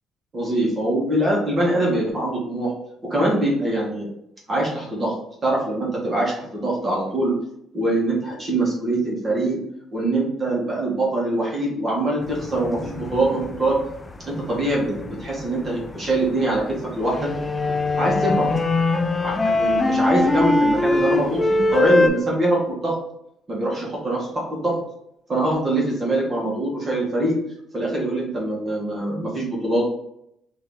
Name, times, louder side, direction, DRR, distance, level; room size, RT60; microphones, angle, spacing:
voice 1, 0.3-2.7 3.0-4.1 4.5-5.1 5.4-7.3 7.7-9.6 9.9-13.8 14.2-16.6 16.9-17.3 18.0-18.5 19.2-23.0 23.5-24.8 25.3-27.4 27.7-29.8, right 1 dB, 30° right, -4 dB, 1.3 m, -23 dB
sound 1, 12.2-22.1, left 2 dB, 15° left, 0.4 m, -22 dB
3.8 x 2.8 x 3.6 m, 0.76 s
cardioid pair, 135°, 0 cm